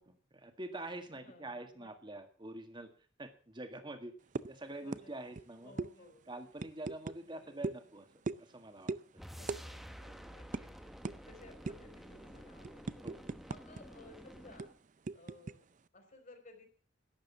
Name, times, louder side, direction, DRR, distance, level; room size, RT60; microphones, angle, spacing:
voice 1, 0.0-2.9 3.2-4.1 4.5-5.8 6.3-8.1 8.4-9.0 10.1-10.4 13.0-13.3, right 2 dB, 25° right, 6 dB, 1.8 m, -46 dB
voice 2, 1.1-1.9 4.7-5.1 5.6-6.3 7.2-7.7 9.3-13.1 13.4-14.7 15.1-15.7 15.9-16.7, left 2 dB, 45° left, 4 dB, 4.1 m, -58 dB
sound 1, 4.4-4.6 4.9-5.1 5.3-5.5 5.8-5.9 6.6-7.2 7.6-7.8 8.3-8.5 8.9-9.0 9.5-9.6 9.9-10.1 10.5-10.6 11.0-11.2 11.7-11.9 12.3-13.8 14.1-14.2 14.6-15.5, right 3 dB, 45° right, 0.5 m, -38 dB
sound 2, 9.2-14.8, equal, ahead, 1.0 m, -51 dB
12.0 x 10.5 x 7.2 m, 0.42 s
head